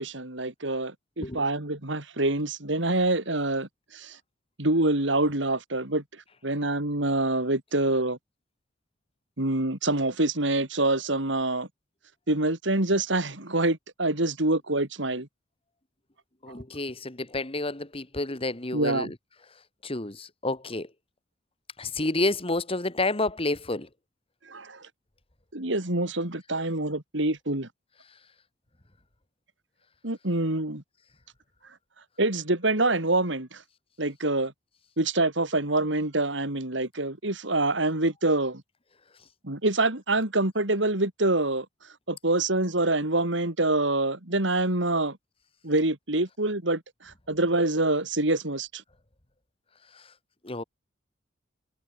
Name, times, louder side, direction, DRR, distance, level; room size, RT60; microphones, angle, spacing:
voice 1, 0.0-4.2 4.6-6.0 6.4-8.2 9.4-11.7 12.3-15.3 18.7-19.1 24.5-24.9 25.5-27.7 30.0-30.8 32.2-33.6 34.0-34.5 35.0-38.6 39.4-41.7 42.1-45.2 45.6-48.8, right 2 dB, 70° right, 3.5 m, -26 dB
voice 2, 16.4-19.1 19.8-20.9 21.8-23.9 50.4-50.6, left 2 dB, 30° left, 2.2 m, -29 dB
head